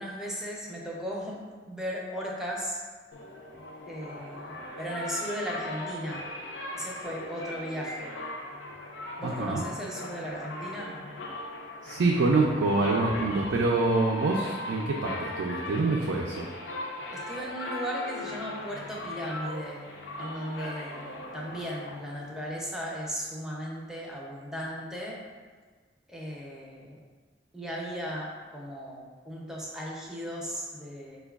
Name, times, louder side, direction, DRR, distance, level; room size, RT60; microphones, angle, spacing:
voice 1, 0.0-1.4 1.7-2.8 3.8-6.2 6.7-8.1 9.2-11.0 17.1-19.8 20.2-25.2 26.1-27.0 27.5-31.2, equal, 5° right, -3 dB, 0.5 m, -36 dB
sound 1, 3.1-22.5, left 1 dB, 80° left, 0.5 m, -39 dB
voice 2, 9.2-9.6 11.8-16.5, right 3 dB, 90° right, -2 dB, 0.4 m, -26 dB
5.0 x 2.3 x 2.3 m, 1.5 s
head